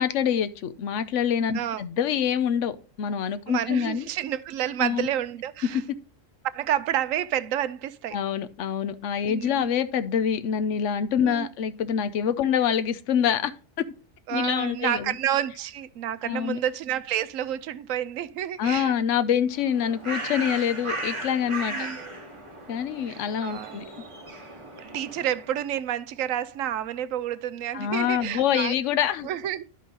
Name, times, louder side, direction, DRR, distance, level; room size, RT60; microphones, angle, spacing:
voice 1, 0.0-4.0 4.8-5.1 8.1-13.5 13.8-13.9 14.3-15.2 16.2-16.6 18.6-21.9 22.7-23.8 27.7-29.3, left 8 dB, 70° left, 1.0 m, -26 dB
voice 2, 3.5-5.8 6.5-8.2 9.3-9.7 11.2-11.5 14.3-18.9 21.7-22.2 23.1-23.9 24.8-28.7 29.2-29.6, right 11 dB, 80° right, 1.0 m, -29 dB
Bird, 19.5-25.6, right 2 dB, 25° right, 1.3 m, -37 dB
11.0 x 5.5 x 3.9 m
omnidirectional pair, 1.4 m